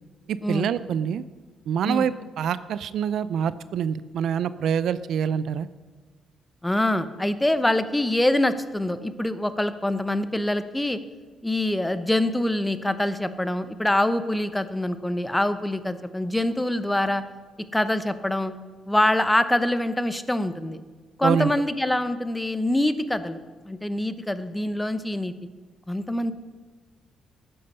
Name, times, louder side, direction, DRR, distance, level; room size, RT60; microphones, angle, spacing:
voice 1, 0.3-1.2 1.7-5.7 21.2-21.5, right 8 dB, 70° right, 15 dB, 0.4 m, -26 dB
voice 2, 6.6-11.0 11.4-17.2 17.7-18.5 18.9-20.8 21.2-23.4 23.6-25.3 25.9-26.3, left 1 dB, 10° left, 12 dB, 0.8 m, -24 dB
13.5 x 9.4 x 5.4 m, 1.4 s
cardioid pair, 90°, 0 cm